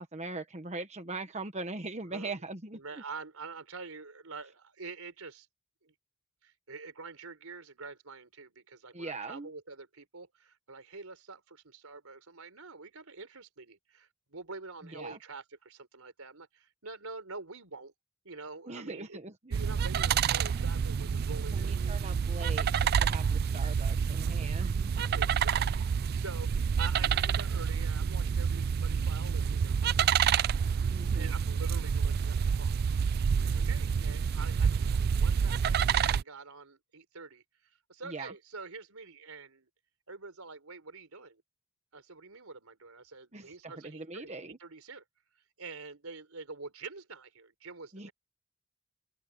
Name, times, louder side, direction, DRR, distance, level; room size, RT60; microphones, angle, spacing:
voice 1, 0.0-2.8 8.9-9.5 14.8-15.2 18.7-19.5 21.5-25.1 30.9-31.3 38.0-38.3 43.3-44.6 47.9-48.1, right 3 dB, 30° right, 1.2 m, -41 dB
voice 2, 2.8-5.5 5.8-5.9 6.4-17.9 18.2-19.2 19.5-21.8 24.2-24.3 25.1-30.2 31.1-32.8 33.4-39.7 40.1-41.4 41.9-44.3 44.6-45.0 45.6-48.1, right 4 dB, 90° right, 4.1 m, -46 dB
sound 1, 19.5-36.2, right 7 dB, 45° right, 0.3 m, -28 dB
open air
head